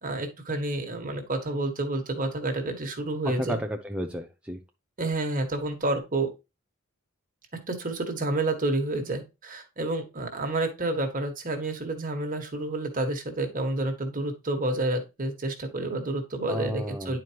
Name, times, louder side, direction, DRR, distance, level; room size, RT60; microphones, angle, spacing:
voice 1, 0.0-3.6 5.0-6.3 7.7-17.2, right 2 dB, 40° right, 4 dB, 1.6 m, -29 dB
voice 2, 3.2-4.6 16.5-17.2, equal, 5° right, 3 dB, 0.5 m, -32 dB
10.5 x 4.7 x 2.9 m, 0.26 s
head